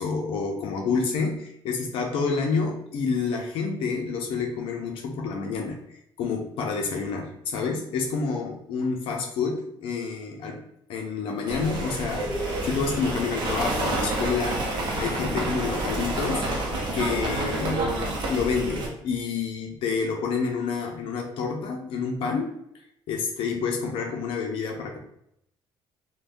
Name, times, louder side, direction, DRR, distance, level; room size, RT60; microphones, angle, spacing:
voice 1, 0.0-10.6 10.9-16.5 16.9-22.5 23.1-25.0, left 5 dB, 70° left, 1 dB, 0.5 m, -28 dB
sound 1, 11.5-18.9, right 2 dB, 50° right, 0.7 m, -29 dB
2.5 x 2.2 x 3.4 m, 0.76 s
cardioid pair, 165°, 10 cm